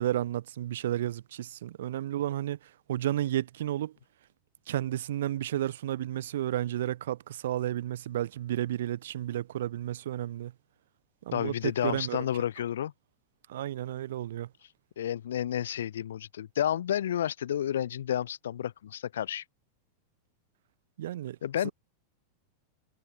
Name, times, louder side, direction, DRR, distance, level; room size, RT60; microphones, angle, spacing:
voice 1, 0.0-2.6 2.9-3.9 4.7-10.5 11.3-11.5 11.8-12.2 13.5-14.5 21.0-21.4 21.6-21.7, right 12 dB, 60° right, 1.0 m, -32 dB
voice 2, 11.3-12.9 15.0-19.4 21.4-21.7, left 10 dB, 60° left, 0.5 m, -31 dB
figure-of-eight pair, 90°, 0 cm